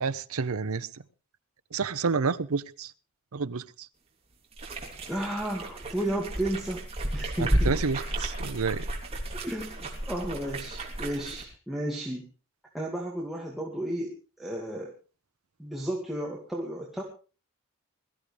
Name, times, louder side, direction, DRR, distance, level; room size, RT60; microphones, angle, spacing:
voice 1, 0.0-0.9 1.7-2.9 3.3-3.6 7.4-8.8, right 4 dB, 85° right, 0.7 m, -29 dB
sound 1, 4.5-11.4, right 1 dB, 30° right, 2.9 m, -32 dB
voice 2, 5.1-6.8 7.1-7.7 9.4-12.3 12.7-14.9 15.6-17.0, right 1 dB, ahead, 2.1 m, -33 dB
22.0 x 13.5 x 3.4 m
head